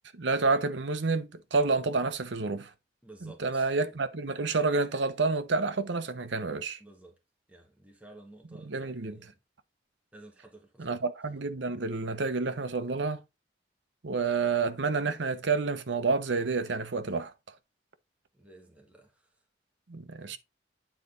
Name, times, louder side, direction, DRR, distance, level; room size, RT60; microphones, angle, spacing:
voice 1, 0.1-2.7 3.2-6.8 8.6-9.3 10.8-13.2 14.0-17.3 19.9-20.4, right 4 dB, 80° right, 0.8 m, -29 dB
voice 2, 3.0-3.7 6.8-7.1 7.5-9.4 10.1-11.0 18.3-19.1, right 2 dB, 5° right, 1.4 m, -53 dB
9.1 x 4.0 x 3.8 m
head